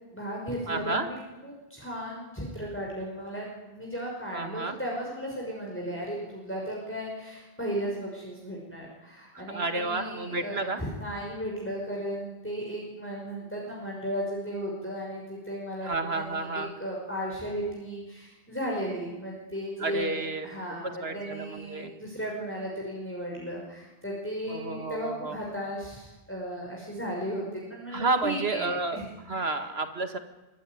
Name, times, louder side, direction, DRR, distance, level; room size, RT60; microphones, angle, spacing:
voice 1, 0.1-1.2 1.4-27.4 27.7-29.5, equal, 10° left, -3 dB, 6.1 m, -35 dB
voice 2, 0.7-1.1 4.3-4.8 9.3-10.8 15.8-16.7 19.8-21.9 24.5-25.4 27.9-29.0 29.3-30.2, right 3 dB, 80° right, 7 dB, 2.2 m, -31 dB
25.0 x 24.0 x 9.7 m, 1.1 s
omnidirectional pair, 1.0 m